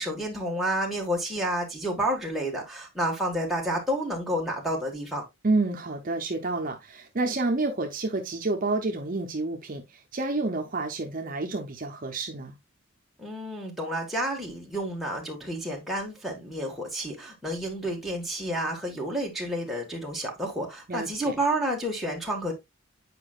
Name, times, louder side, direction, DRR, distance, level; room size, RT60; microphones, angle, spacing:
voice 1, 0.0-5.2 13.2-22.5, right 1 dB, ahead, 1.5 m, -30 dB
voice 2, 5.4-12.6 20.9-21.3, right 2 dB, 40° right, 0.7 m, -29 dB
8.3 x 4.9 x 2.4 m
head